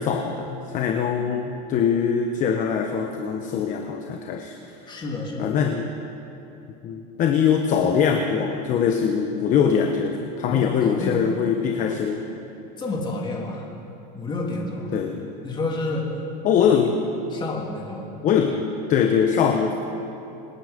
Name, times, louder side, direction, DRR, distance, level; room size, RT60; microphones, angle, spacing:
voice 1, 0.0-4.5 5.4-5.9 6.8-12.2 14.9-15.3 16.4-16.9 18.2-18.5 18.9-19.7, left 7 dB, 40° left, 4 dB, 1.1 m, -22 dB
voice 2, 4.9-5.6 10.5-11.3 12.8-13.7 14.1-15.0 15.4-16.1 16.7-16.8 17.3-18.1, left 2 dB, 20° left, -1 dB, 2.9 m, -30 dB
26.5 x 10.5 x 5.3 m, 2.8 s
supercardioid pair, 135°, 21 cm